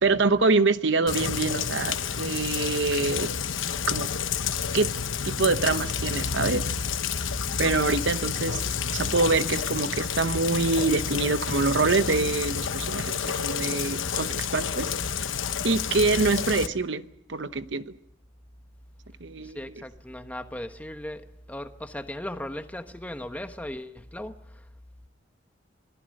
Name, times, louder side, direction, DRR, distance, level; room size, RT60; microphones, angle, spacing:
voice 1, 0.0-3.3 3.9-4.1 4.7-4.9 5.2-6.6 7.6-8.6 8.9-14.9 15.6-17.8 19.2-19.6, right 3 dB, 65° right, 0.9 m, -25 dB
Rain, 1.1-16.7, left 6 dB, 80° left, 1.0 m, -30 dB
voice 2, 19.4-24.7, left 1 dB, 10° left, 1.1 m, -37 dB
26.5 x 18.5 x 6.5 m
head